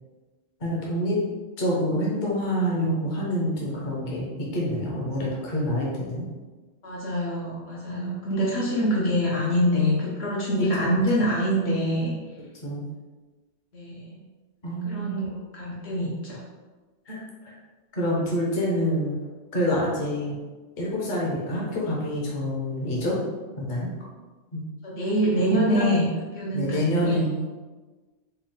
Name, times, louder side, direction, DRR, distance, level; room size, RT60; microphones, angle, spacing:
voice 1, 0.6-1.2 1.6-6.2 7.9-8.3 8.6-8.7 10.8-10.9 12.6-12.8 14.6-15.2 17.1-17.6 17.9-19.2 19.5-20.4 20.8-23.2 23.6-23.9 24.5-24.6 25.5-25.9 26.5-27.4, equal, 45° left, -4 dB, 1.0 m, -27 dB
voice 2, 6.8-12.1 13.7-14.2 14.9-15.3 15.5-16.4 24.8-26.1 26.3-27.2, equal, 65° left, -5 dB, 1.1 m, -25 dB
4.4 x 2.3 x 3.7 m, 1.3 s
omnidirectional pair, 1.2 m